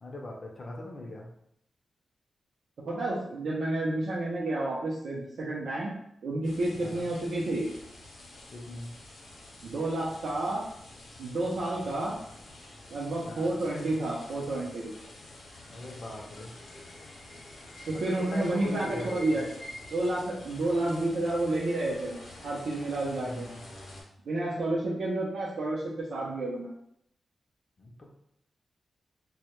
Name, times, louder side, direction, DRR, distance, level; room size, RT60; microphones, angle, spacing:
voice 1, 0.0-1.3 6.8-7.1 8.5-8.9 13.3-13.5 15.7-16.5 17.9-19.4 23.1-23.6 27.8-28.1, left 1 dB, 40° left, 0 dB, 0.4 m, -40 dB
voice 2, 2.8-5.9 6.2-7.7 9.6-10.6 11.2-12.2 12.9-14.9 17.9-19.5 19.9-22.2 22.4-23.5 24.3-26.7, right 2 dB, 75° right, -5 dB, 0.4 m, -30 dB
son pluie, 6.4-24.0, left 1 dB, 80° left, 0.6 m, -48 dB
2.1 x 2.1 x 2.9 m, 0.74 s
wide cardioid pair, 150°, 0 cm